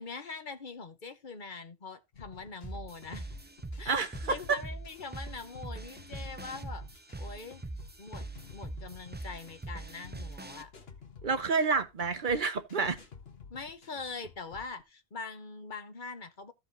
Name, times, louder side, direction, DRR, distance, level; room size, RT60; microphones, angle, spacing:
voice 1, 0.0-3.3 3.8-7.6 8.0-10.7 13.5-16.5, left 4 dB, 50° left, 1.1 m, -43 dB
sound 1, 2.1-14.8, left 5 dB, 75° left, 1.6 m, -52 dB
sound 2, 2.6-10.6, right 2 dB, 15° right, 0.3 m, -42 dB
voice 2, 3.9-4.6 11.2-13.0, right 4 dB, 55° right, 0.9 m, -29 dB
14.0 x 4.8 x 3.9 m
omnidirectional pair, 1.0 m